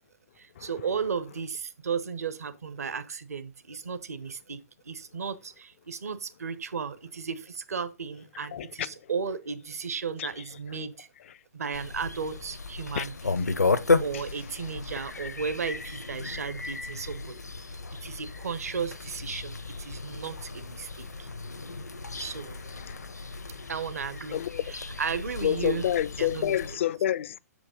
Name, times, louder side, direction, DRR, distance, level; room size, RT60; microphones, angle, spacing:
voice 1, 0.4-4.6 4.8-11.1 11.5-13.4 14.0-17.4 18.0-21.3 22.2-22.6 23.7-24.4 24.7-25.9 26.2-26.6, right 6 dB, 65° right, 1.0 m, -34 dB
voice 2, 8.5-8.9 10.2-10.3 12.9-13.1 14.1-14.2 22.3-22.4 22.8-23.1 24.3-24.6 25.4-27.4, left 11 dB, 50° left, 0.4 m, -29 dB
sound 1, 11.7-26.7, left 4 dB, 80° left, 0.8 m, -33 dB
6.8 x 5.0 x 5.3 m
figure-of-eight pair, 120°, 9 cm